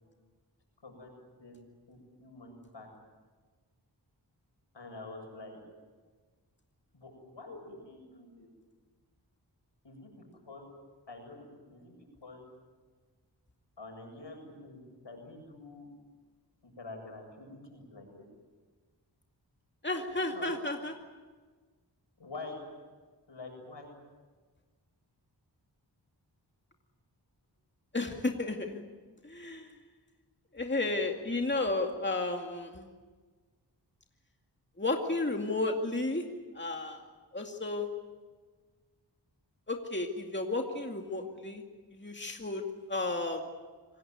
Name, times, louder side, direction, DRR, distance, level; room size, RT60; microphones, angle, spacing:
voice 1, 1.9-2.9 4.7-5.6 6.9-8.5 9.8-10.1 10.4-10.6 11.1-11.9 12.2-12.4 13.8-15.9 16.6-18.3 19.9-20.5 22.2-22.6 23.3-23.9, left 2 dB, 80° left, 3 dB, 7.7 m, -47 dB
voice 2, 19.8-20.9 27.9-28.8 29.2-29.7 30.5-32.9 34.8-36.2 36.6-37.0 37.3-37.9 39.7-41.6 42.0-42.6 42.9-43.4, left 2 dB, 25° left, 3 dB, 2.3 m, -32 dB
26.5 x 18.5 x 9.4 m, 1.4 s
wide cardioid pair, 50°, 43 cm